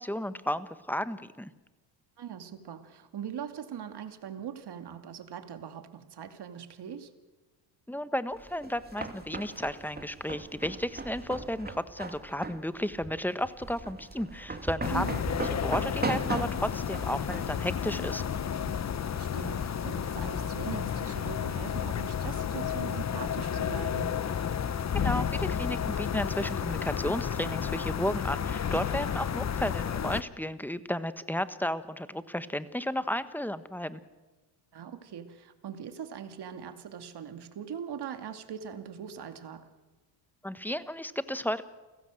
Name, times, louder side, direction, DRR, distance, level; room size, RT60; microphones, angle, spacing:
voice 1, 0.0-1.5 7.9-18.2 24.9-34.0 40.4-41.6, left 1 dB, 5° left, 12 dB, 1.4 m, -33 dB
voice 2, 2.2-7.1 14.9-15.2 18.9-24.2 34.7-39.7, right 8 dB, 50° right, 8 dB, 2.6 m, -41 dB
sound 1, 8.4-18.8, right 3 dB, 20° right, 2.7 m, -39 dB
sound 2, 14.8-30.2, left 8 dB, 35° left, 1.1 m, -32 dB
30.0 x 16.0 x 7.8 m, 1.2 s
supercardioid pair, 80°, 50 cm